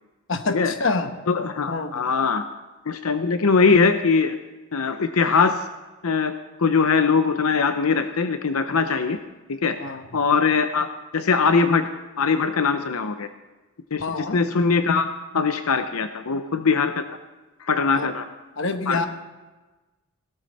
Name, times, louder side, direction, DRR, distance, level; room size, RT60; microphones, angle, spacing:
voice 1, 0.3-1.1 1.7-2.1 9.8-10.3 14.0-14.4 17.9-18.1 18.6-19.1, left 3 dB, 60° left, 8 dB, 1.1 m, -27 dB
voice 2, 1.3-2.4 2.9-4.4 4.7-5.6 6.0-6.3 6.6-9.2 9.5-9.8 10.1-10.9 11.1-11.9 12.2-13.3 13.9-15.1 15.3-17.2 17.6-18.2 18.9-19.1, left 5 dB, 90° left, 9 dB, 0.7 m, -21 dB
17.0 x 13.0 x 4.2 m, 1.2 s
head